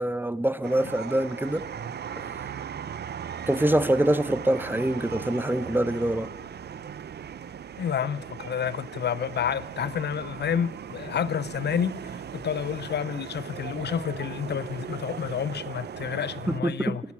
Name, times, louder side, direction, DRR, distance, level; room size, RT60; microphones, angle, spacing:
voice 1, 0.0-1.6 2.2-2.3 3.5-6.3 16.5-17.0, right 1 dB, 10° right, 0.6 m, -25 dB
sound 1, 0.6-16.6, right 8 dB, 60° right, 0.5 m, -38 dB
voice 2, 7.8-17.0, left 8 dB, 60° left, 0.5 m, -29 dB
12.5 x 12.5 x 7.3 m
cardioid pair, 45°, 20 cm